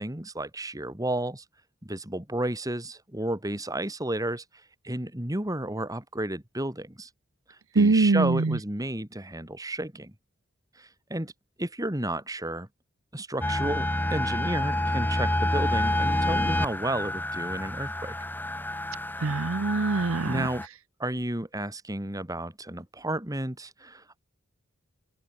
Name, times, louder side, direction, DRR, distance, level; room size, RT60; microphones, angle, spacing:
voice 1, 0.0-1.4 1.8-4.4 4.8-7.1 7.7-10.1 10.8-11.3 11.6-12.7 13.1-18.2 20.3-20.6 21.0-24.2, right 1 dB, 15° right, 3.0 m, -32 dB
voice 2, 7.7-8.6 19.2-20.5, right 3 dB, 75° right, 0.7 m, -23 dB
sound 1, 13.4-20.7, left 1 dB, 10° left, 2.4 m, -28 dB
head